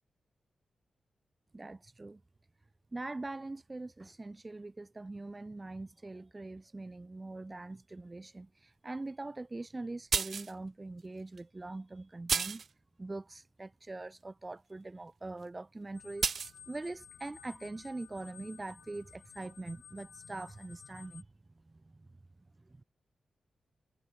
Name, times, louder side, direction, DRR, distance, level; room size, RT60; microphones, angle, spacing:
voice 1, 1.5-2.2 2.9-12.6 13.0-16.3 16.7-21.3 21.7-22.1, right 2 dB, 20° right, 0.7 m, -43 dB
sound 1, 10.1-10.5 11.4-11.5 12.3-12.7 16.2-16.5, right 6 dB, 50° right, 0.3 m, -31 dB
sound 2, 15.9-21.2, left 8 dB, 85° left, 3.4 m, -55 dB
wide cardioid pair, 170°, 0 cm